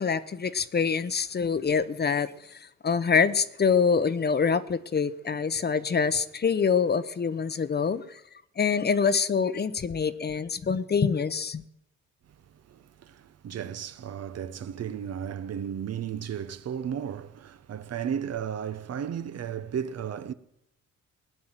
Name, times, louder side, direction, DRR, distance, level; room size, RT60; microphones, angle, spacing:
voice 1, 0.0-8.2 8.6-11.6, left 6 dB, 35° left, 0.9 m, -25 dB
voice 2, 12.7-20.3, right 8 dB, 55° right, 1.0 m, -34 dB
19.0 x 9.5 x 7.4 m
cardioid pair, 90°, 30 cm